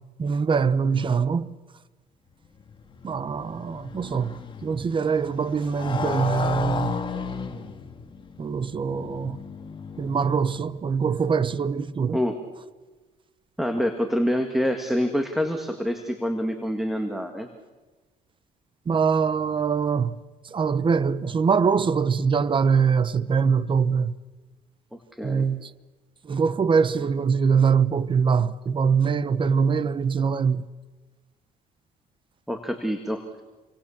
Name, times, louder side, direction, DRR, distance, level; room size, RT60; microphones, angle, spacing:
voice 1, 0.2-1.5 3.0-4.3 4.6-6.9 8.4-9.4 10.0-12.2 18.9-20.1 20.5-24.1 25.2-25.6 26.3-30.6, right 6 dB, 30° right, 0.9 m, -23 dB
Motorcycle, 2.6-10.7, left 5 dB, 30° left, 2.1 m, -34 dB
voice 2, 13.6-17.5 25.1-25.5 32.5-33.2, equal, ahead, 1.9 m, -26 dB
28.5 x 24.0 x 7.2 m
cardioid pair, 110°, 17 cm